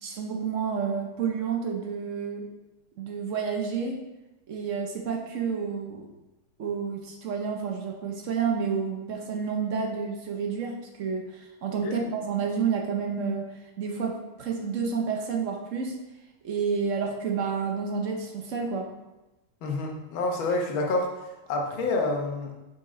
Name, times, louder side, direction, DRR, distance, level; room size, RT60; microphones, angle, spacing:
voice 1, 0.0-2.4 3.0-4.0 4.5-6.1 6.6-16.0 16.4-18.9, right 6 dB, 65° right, 2 dB, 0.7 m, -30 dB
voice 2, 19.6-21.1 21.5-22.5, left 2 dB, 70° left, 0 dB, 1.8 m, -27 dB
6.1 x 6.0 x 3.7 m, 1.0 s
omnidirectional pair, 2.3 m